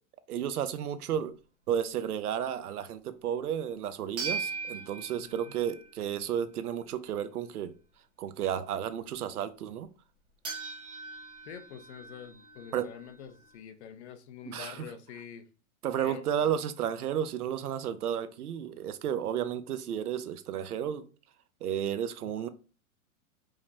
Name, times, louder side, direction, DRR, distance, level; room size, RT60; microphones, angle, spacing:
voice 1, 0.3-1.4 1.7-7.7 8.2-9.9 12.7-12.8 14.5-14.9 15.8-21.0 21.6-22.5, right 9 dB, 85° right, 0.6 m, -32 dB
sound 1, 4.2-6.2 10.4-13.5, right 4 dB, 10° right, 0.4 m, -40 dB
voice 2, 5.2-5.5 11.5-15.5 16.0-16.5 22.3-22.4, left 8 dB, 50° left, 0.6 m, -46 dB
4.9 x 2.0 x 2.8 m
hypercardioid pair, 115°, 44 cm